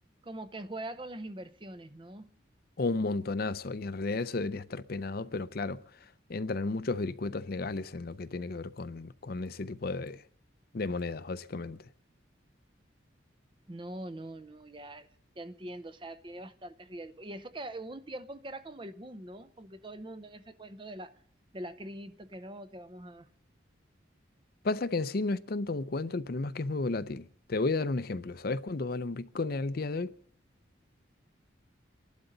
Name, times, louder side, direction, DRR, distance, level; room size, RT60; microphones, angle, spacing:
voice 1, 0.2-2.3 13.7-15.1 15.4-21.2 21.5-23.3, right 1 dB, 25° right, 0.7 m, -43 dB
voice 2, 2.8-5.8 6.3-10.2 10.7-11.8 24.6-30.1, left 3 dB, 50° left, 0.6 m, -33 dB
28.5 x 12.0 x 3.9 m
head